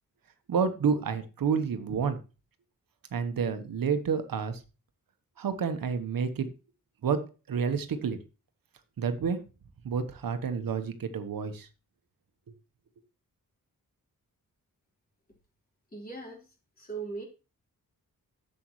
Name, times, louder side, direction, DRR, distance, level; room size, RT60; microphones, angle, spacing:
voice 1, 0.5-2.2 3.1-4.6 5.4-6.5 7.0-8.2 9.0-9.4 9.8-11.7, right 6 dB, 80° right, 9 dB, 1.1 m, -29 dB
voice 2, 15.9-16.4 16.8-17.2, right 4 dB, 25° left, -1 dB, 3.9 m, -38 dB
11.5 x 7.7 x 3.1 m, 0.30 s
wide cardioid pair, 125°, 34 cm